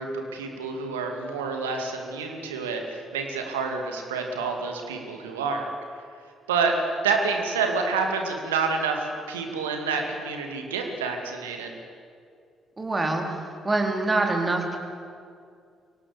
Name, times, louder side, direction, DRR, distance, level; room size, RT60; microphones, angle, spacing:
voice 1, 0.0-5.7 6.5-11.7, right 4 dB, 80° right, 3 dB, 2.4 m, -28 dB
voice 2, 12.8-14.8, right 2 dB, 25° right, 2 dB, 4.2 m, -25 dB
24.5 x 17.5 x 8.3 m, 2.3 s
figure-of-eight pair, 45°, 0 cm